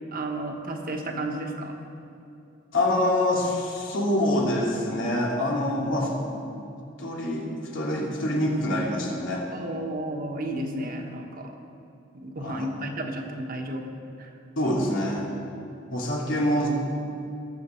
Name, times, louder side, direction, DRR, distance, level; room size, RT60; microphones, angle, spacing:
voice 1, 0.1-1.7 9.5-11.5 12.1-13.9 14.2-14.3, right 1 dB, 45° right, 2 dB, 1.3 m, -32 dB
voice 2, 2.7-9.5 12.4-12.7 14.6-15.3 15.9-17.1, left 1 dB, 90° left, -3 dB, 2.6 m, -26 dB
20.0 x 7.3 x 4.5 m, 2.7 s
head